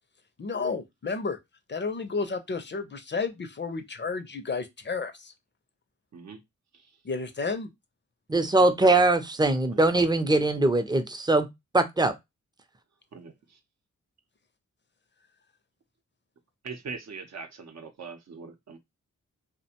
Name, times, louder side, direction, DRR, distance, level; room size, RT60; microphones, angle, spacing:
voice 1, 0.4-1.4 1.7-5.3 7.0-7.7, left 4 dB, 35° left, 0.5 m, -32 dB
voice 2, 8.3-11.5 11.7-12.1, right 2 dB, 15° right, 0.5 m, -22 dB
voice 3, 9.4-9.8 13.1-13.6 16.6-18.8, right 5 dB, 60° right, 0.7 m, -42 dB
2.4 x 2.1 x 2.8 m
cardioid pair, 50°, 30 cm